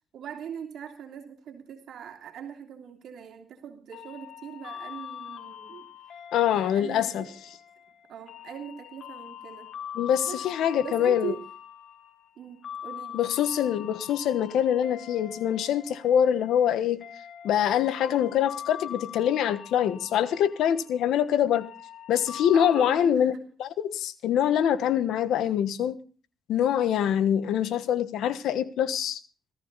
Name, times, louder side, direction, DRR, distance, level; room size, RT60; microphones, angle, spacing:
voice 1, 0.1-5.9 6.5-7.4 8.1-9.7 10.3-10.4 10.8-11.4 12.4-13.2 22.5-23.4 27.0-27.2, right 8 dB, 70° right, 2.9 m, -41 dB
sound 1, 3.9-22.9, left 9 dB, 60° left, 1.2 m, -43 dB
voice 2, 6.3-7.2 9.9-11.3 13.1-17.0 17.4-21.7 22.1-23.3 23.6-26.0 26.5-29.2, left 9 dB, 80° left, 1.3 m, -24 dB
16.5 x 14.0 x 4.1 m
cardioid pair, 90°, 0 cm